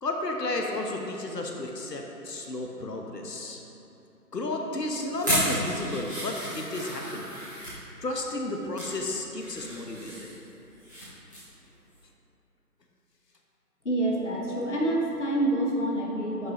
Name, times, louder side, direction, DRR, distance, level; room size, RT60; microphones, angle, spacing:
voice 1, 0.0-3.6 4.3-7.3 8.0-10.3, left 2 dB, 80° left, 1 dB, 1.1 m, -32 dB
sound 1, 5.1-7.8 8.4-8.9 9.3-11.0 11.3-11.5 11.9-12.0, equal, 10° right, 1.7 m, -33 dB
voice 2, 13.8-16.5, right 1 dB, 45° left, -2 dB, 1.0 m, -27 dB
10.5 x 5.7 x 2.9 m, 2.8 s
figure-of-eight pair, 175°, 48 cm